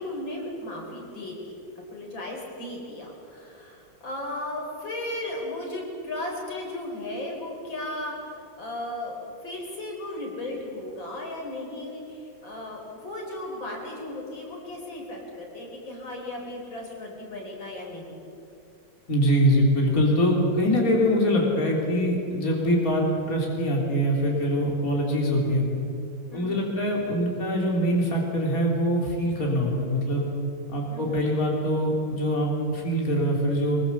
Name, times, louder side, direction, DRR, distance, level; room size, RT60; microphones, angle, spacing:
voice 1, 0.0-1.5 1.9-9.2 9.4-18.2 26.3-26.7 30.9-31.3, left 1 dB, 90° left, 0 dB, 5.2 m, -36 dB
voice 2, 19.1-25.6 26.3-30.3 30.7-33.8, equal, 45° left, -2 dB, 4.0 m, -23 dB
23.0 x 23.0 x 7.1 m, 2.6 s
omnidirectional pair, 2.0 m